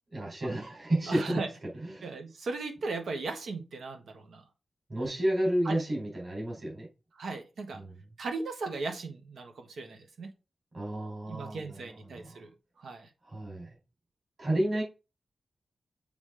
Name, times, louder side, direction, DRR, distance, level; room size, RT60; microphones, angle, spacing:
voice 1, 0.1-2.1 4.9-6.9 7.7-8.0 10.7-12.4 13.2-13.7 14.4-14.8, right 1 dB, 45° right, 3.9 m, -31 dB
voice 2, 1.1-1.5 2.0-4.4 5.6-5.8 7.2-7.8 8.2-10.3 11.3-12.5 12.8-13.1, right 3 dB, 90° right, 1.3 m, -37 dB
7.3 x 3.5 x 4.9 m
wide cardioid pair, 125°, 0 cm